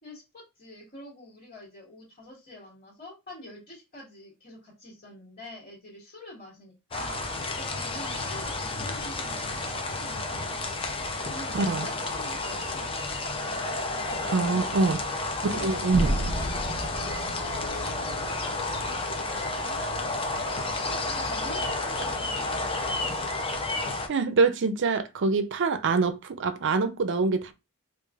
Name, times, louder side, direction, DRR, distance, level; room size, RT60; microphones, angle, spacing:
voice 1, 0.0-7.2 7.6-10.8 11.3-13.0 13.4-14.9 15.6-23.2, left 1 dB, 45° left, 1.6 m, -46 dB
sound 1, 6.9-24.1, left 2 dB, 25° left, 0.6 m, -31 dB
voice 2, 11.5-11.9 14.3-15.0 15.4-16.2 24.1-27.5, right 4 dB, 55° right, 0.5 m, -25 dB
sound 2, 15.9-19.9, right 1 dB, 25° right, 0.9 m, -32 dB
4.7 x 2.5 x 2.4 m
head